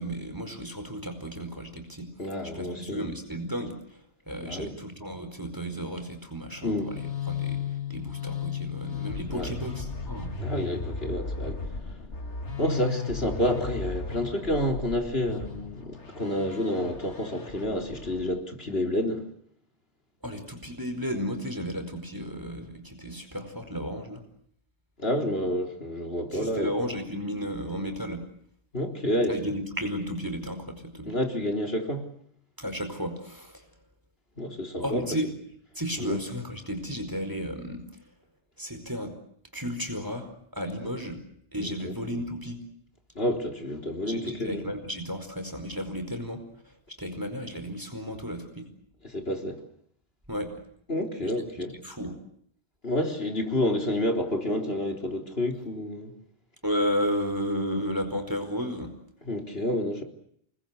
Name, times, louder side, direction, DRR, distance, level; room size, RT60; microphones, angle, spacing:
voice 1, 0.0-2.1 2.5-3.8 4.3-7.6 7.9-10.4 20.2-24.2 26.3-28.2 29.3-31.1 32.6-33.6 34.8-35.3 35.7-37.8 38.6-39.1 39.5-41.2 41.5-42.6 44.1-46.4 47.0-48.6 50.3-50.5 51.2-51.3 51.8-52.2 56.6-58.9, equal, 15° right, 4.9 m, -33 dB
voice 2, 2.2-3.1 4.4-4.7 6.6-6.9 9.3-9.5 10.4-11.6 12.6-19.3 25.0-26.7 28.7-29.4 31.0-32.1 34.4-35.0 36.0-36.2 41.6-41.9 43.2-44.6 49.0-49.6 50.9-51.7 52.8-56.1 59.3-60.0, left 1 dB, 60° left, 4.1 m, -29 dB
sound 1, 6.5-18.4, left 6 dB, 85° left, 2.6 m, -35 dB
28.5 x 21.5 x 8.3 m
omnidirectional pair, 1.2 m